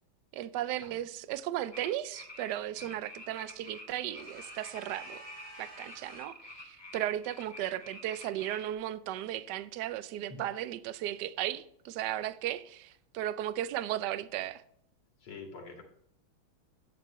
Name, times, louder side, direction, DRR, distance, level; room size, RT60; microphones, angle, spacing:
voice 1, 0.3-5.2 5.6-14.6, right 13 dB, 75° right, 1.0 m, -35 dB
sound 1, 1.7-8.7, left 1 dB, 15° left, 1.1 m, -48 dB
sound 2, 4.1-6.4, right 2 dB, 50° right, 4.4 m, -50 dB
voice 2, 15.2-15.8, left 4 dB, 80° left, 2.9 m, -46 dB
11.5 x 8.8 x 3.1 m
omnidirectional pair, 2.4 m